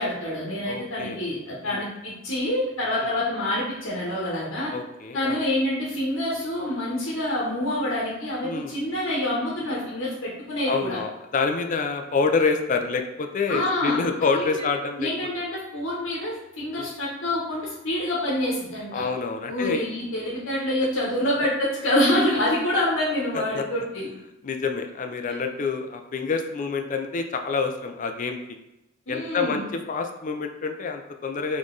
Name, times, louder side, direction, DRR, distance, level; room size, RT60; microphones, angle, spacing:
voice 1, 0.0-4.7 5.1-11.0 13.5-14.0 14.3-14.6 15.0-19.0 19.5-24.1 29.1-29.7, left 1 dB, 85° left, -6 dB, 1.0 m, -26 dB
voice 2, 0.7-1.2 1.6-1.8 4.7-5.4 8.4-8.7 10.7-15.1 16.8-16.9 18.9-19.9 23.3-23.6 24.4-28.4 29.1-29.6 29.9-31.6, left 4 dB, 40° left, 5 dB, 0.4 m, -27 dB
3.9 x 3.1 x 3.9 m, 0.92 s
head